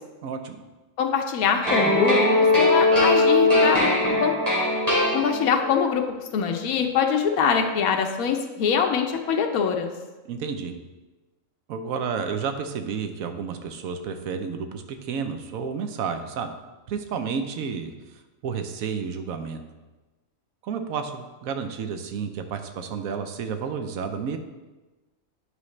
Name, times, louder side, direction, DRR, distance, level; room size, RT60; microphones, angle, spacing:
voice 1, 0.2-0.6 10.3-10.7 11.7-16.5 16.9-17.9 18.4-19.6 20.6-24.4, right 6 dB, 80° right, 7 dB, 1.1 m, -31 dB
voice 2, 1.0-2.2 2.6-4.4 5.1-6.0 6.3-9.9, left 6 dB, 85° left, 4 dB, 1.2 m, -23 dB
sound 1, 1.6-5.7, left 2 dB, 25° right, 2.6 m, -20 dB
9.7 x 5.5 x 3.2 m, 1.2 s
omnidirectional pair, 1.4 m